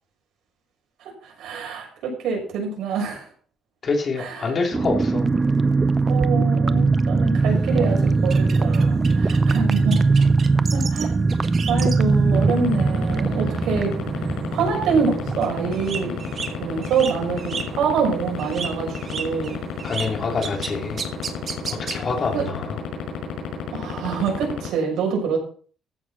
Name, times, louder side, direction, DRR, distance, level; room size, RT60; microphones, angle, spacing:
voice 1, 1.0-3.3 4.2-4.5 6.0-10.0 10.7-11.2 11.7-14.2 14.5-16.1 16.6-19.6 22.3-22.4 23.7-25.4, right 5 dB, 80° right, 1 dB, 6.5 m, -26 dB
voice 2, 3.8-5.3 19.8-21.0 21.8-22.8, left 4 dB, 35° left, 2 dB, 3.1 m, -26 dB
sound 1, 4.7-17.1 17.3-17.4 17.7-18.0, right 3 dB, 20° right, 0.6 m, -21 dB
sound 2, 7.5-12.1 12.5-12.8 13.3-13.8 14.0-14.1 14.5-18.0 18.3-22.4, right 6 dB, 35° right, 2.0 m, -34 dB
sound 3, 12.3-24.7, left 11 dB, 90° left, 5.8 m, -29 dB
14.5 x 7.3 x 6.0 m, 0.43 s
cardioid pair, 160°, 0 cm